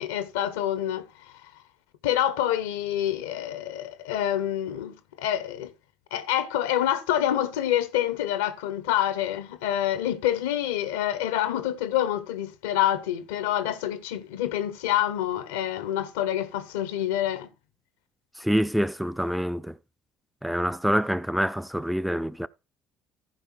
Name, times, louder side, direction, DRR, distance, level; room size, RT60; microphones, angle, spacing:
voice 1, 0.0-1.5 2.0-5.7 6.1-17.5, left 11 dB, 75° left, 0.8 m, -27 dB
voice 2, 18.4-19.8 20.4-22.5, equal, ahead, 0.5 m, -26 dB
14.5 x 5.1 x 4.4 m
figure-of-eight pair, 50°, 0 cm